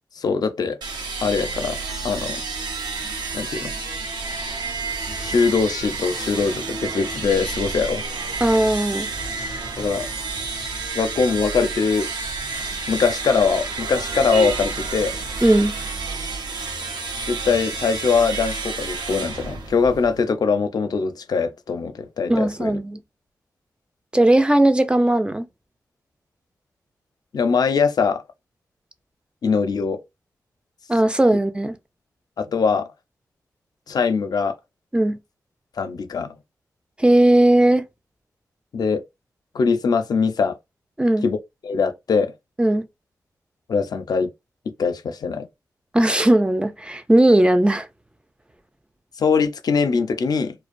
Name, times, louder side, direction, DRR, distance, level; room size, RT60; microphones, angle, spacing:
voice 1, 0.2-0.8 1.2-2.4 3.3-3.7 5.2-8.0 9.8-10.1 10.9-12.1 12.9-15.1 17.3-22.7 27.3-28.2 29.4-30.0 32.4-32.9 33.9-34.6 35.8-36.3 38.7-39.0 39.5-40.6 41.2-41.4 41.6-42.3 43.7-44.3 44.8-45.5 49.2-50.5, left 5 dB, 65° left, 0.4 m, -22 dB
sound 1, 0.8-20.3, right 4 dB, 85° right, 0.6 m, -30 dB
voice 2, 8.4-9.1 15.4-15.7 22.3-23.0 24.1-25.5 30.9-31.8 34.9-35.2 37.0-37.8 41.0-41.3 42.6-42.8 45.9-47.9, right 1 dB, 15° right, 0.4 m, -17 dB
2.4 x 2.1 x 2.4 m
cardioid pair, 50°, 7 cm